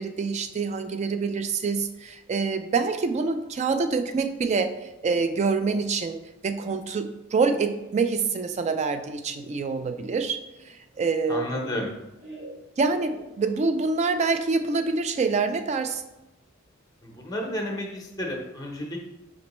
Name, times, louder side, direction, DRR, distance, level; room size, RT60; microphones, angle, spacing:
voice 1, 0.0-6.2 6.4-10.4 10.6-11.7 12.8-16.0, right 4 dB, 35° right, 9 dB, 0.3 m, -26 dB
Laughter, 10.2-13.9, right 1 dB, 55° right, 1.1 m, -47 dB
voice 2, 11.3-11.9 17.0-19.0, left 1 dB, 20° left, 1 dB, 0.7 m, -32 dB
5.1 x 3.1 x 3.0 m, 0.94 s
head